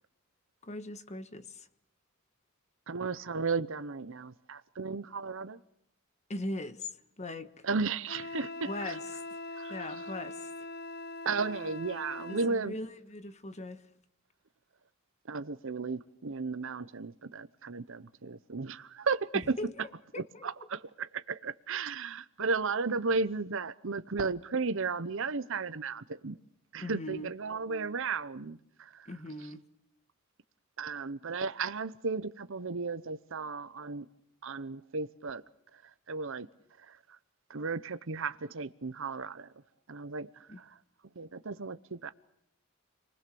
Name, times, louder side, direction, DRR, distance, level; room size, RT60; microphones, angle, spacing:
voice 1, 0.6-1.7 6.3-6.9 7.2-7.6 8.6-9.0 9.7-10.5 12.3-13.8 19.6-19.9 20.1-20.5 22.4-22.5 26.8-27.3 29.1-29.6 40.5-40.6, left 1 dB, 30° left, 1.4 m, -40 dB
voice 2, 2.9-5.6 7.6-9.0 9.5-10.1 11.2-12.7 15.3-19.4 20.2-26.4 26.7-29.1 30.8-34.1 34.4-35.4 35.7-36.5 36.8-37.2 37.5-39.5 39.9-40.8 41.2-42.1, right 4 dB, 65° right, 0.9 m, -35 dB
Wind instrument woodwind instrument, 8.1-12.5, left 2 dB, 50° left, 0.9 m, -42 dB
30.0 x 20.5 x 7.0 m
head